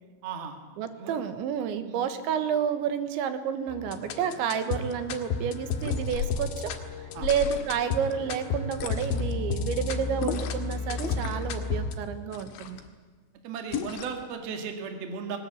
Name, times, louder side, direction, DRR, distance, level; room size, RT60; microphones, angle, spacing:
voice 1, 0.2-0.6 1.0-1.2 1.8-2.0 7.1-7.3 13.4-15.4, right 6 dB, 55° right, 4 dB, 3.8 m, -36 dB
voice 2, 0.8-6.7 7.2-12.8, right 8 dB, 75° right, 9 dB, 3.5 m, -30 dB
sound 1, 3.7-12.0, left 4 dB, 90° left, 4.3 m, -32 dB
sound 2, 5.7-6.4 7.2-7.9 8.7-9.3 10.2-10.7 10.9-11.5 12.3-12.9 13.7-14.2, left 8 dB, 70° left, 3.8 m, -35 dB
21.5 x 19.5 x 8.6 m, 1.4 s
omnidirectional pair, 5.5 m